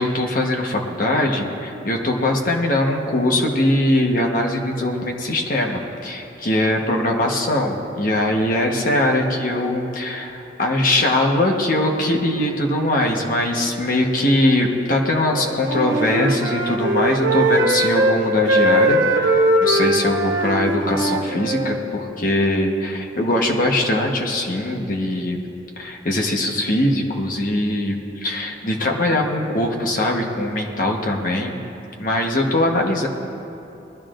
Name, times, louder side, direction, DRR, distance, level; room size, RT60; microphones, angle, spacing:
voice 1, 0.0-25.4 25.8-31.6 32.0-33.1, left 1 dB, 50° left, 1 dB, 1.2 m, -21 dB
Wind instrument woodwind instrument, 15.3-18.2 18.5-21.8, right 1 dB, 85° right, 1.2 m, -20 dB
20.0 x 12.5 x 2.5 m, 2.9 s
head